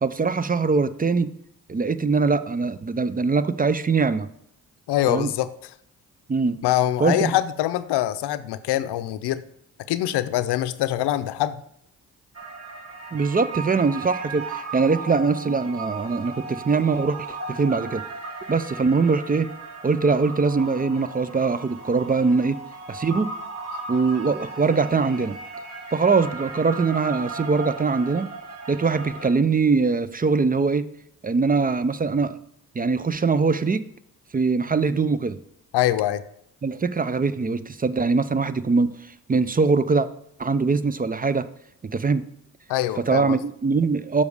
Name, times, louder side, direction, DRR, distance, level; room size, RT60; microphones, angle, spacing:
voice 1, 0.0-1.3 1.7-4.3 5.1-5.3 6.3-6.6 7.0-7.3 13.1-18.0 18.5-19.5 19.8-22.6 22.9-23.3 23.9-25.4 25.9-28.3 28.7-30.8 31.2-32.4 32.7-33.8 34.3-35.4 36.6-39.0 39.3-40.1 40.4-41.5 41.8-42.2 43.1-44.2, right 4 dB, 20° right, 14 dB, 0.5 m, -22 dB
voice 2, 4.9-5.7 6.6-9.4 9.9-11.6 35.7-36.2 42.7-43.4, left 13 dB, 70° left, 13 dB, 0.6 m, -24 dB
sound 1, 12.3-29.3, right 3 dB, 35° right, 1.7 m, -36 dB
7.0 x 5.4 x 4.9 m, 0.73 s
hypercardioid pair, 50°, 41 cm